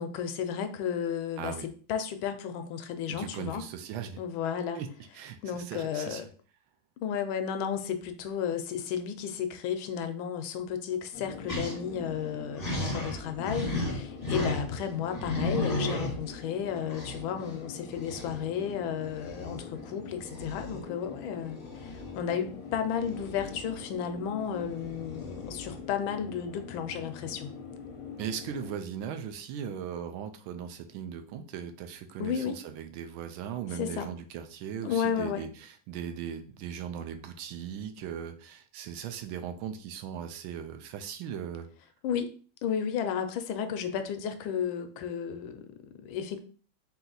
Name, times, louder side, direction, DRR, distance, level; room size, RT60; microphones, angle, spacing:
voice 1, 0.0-3.6 4.2-4.8 5.4-6.3 7.0-27.5 32.2-32.6 33.8-34.1 34.8-35.5 42.0-42.3 42.6-46.4, left 8 dB, 75° left, 8 dB, 1.3 m, -33 dB
voice 2, 1.4-1.7 3.1-4.2 4.7-4.9 5.1-6.3 28.2-41.7, right 8 dB, 80° right, 7 dB, 1.3 m, -38 dB
sound 1, 11.1-28.7, left 5 dB, 55° left, 1.0 m, -44 dB
sound 2, 11.5-11.8 12.1-12.2 12.6-14.8 15.1-16.4 16.9-17.2 17.9-18.4 19.1-19.6 20.2-20.8 21.6-22.2 23.0-23.9 24.6-25.8, left 1 dB, 25° left, 0.9 m, -34 dB
4.2 x 2.8 x 3.8 m, 0.40 s
omnidirectional pair, 2.3 m